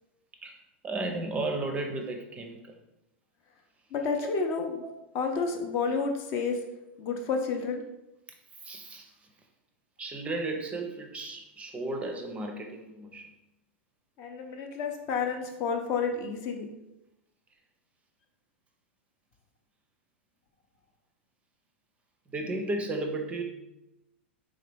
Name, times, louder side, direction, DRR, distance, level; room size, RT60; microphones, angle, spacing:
voice 1, 0.8-2.8 4.0-4.3 4.8-4.9 8.6-9.1 10.0-13.3 22.3-23.4, right 2 dB, 20° right, 4 dB, 0.5 m, -34 dB
voice 2, 3.9-4.7 5.1-6.6 7.0-7.8 14.2-16.7, left 5 dB, 40° left, 4 dB, 0.6 m, -30 dB
3.6 x 2.8 x 3.4 m, 0.94 s
hypercardioid pair, 100°, 6 cm